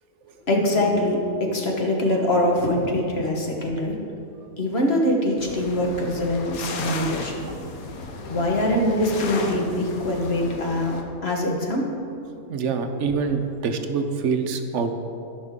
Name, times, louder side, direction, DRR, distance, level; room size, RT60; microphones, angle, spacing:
voice 1, 0.4-4.0 4.6-7.4 8.3-11.9, left 1 dB, 45° left, 0 dB, 1.4 m, -23 dB
sound 1, 5.4-11.0, left 3 dB, 75° left, 1.3 m, -35 dB
voice 2, 12.5-14.9, right 5 dB, 65° right, 7 dB, 0.9 m, -25 dB
14.5 x 5.7 x 3.6 m, 2.7 s
omnidirectional pair, 1.5 m